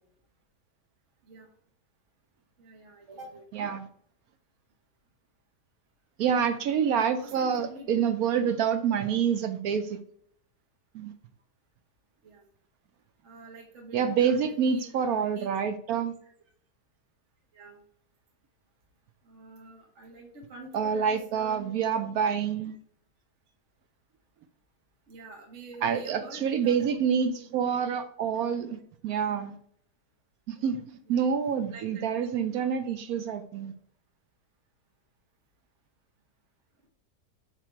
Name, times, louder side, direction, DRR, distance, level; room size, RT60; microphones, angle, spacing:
voice 1, 2.6-3.4 6.4-8.0 12.2-12.4 13.2-15.5 16.2-16.3 17.5-17.8 19.2-21.7 25.1-27.6 31.1-31.2 31.7-32.3 32.6-33.0, right 2 dB, 45° right, 0 dB, 1.4 m, -47 dB
voice 2, 3.5-3.9 6.2-10.0 10.9-11.1 13.9-16.1 20.7-22.7 25.8-29.6 30.5-33.7, right 7 dB, 70° right, 9 dB, 0.9 m, -27 dB
7.7 x 3.1 x 4.4 m, 0.62 s
omnidirectional pair, 1.8 m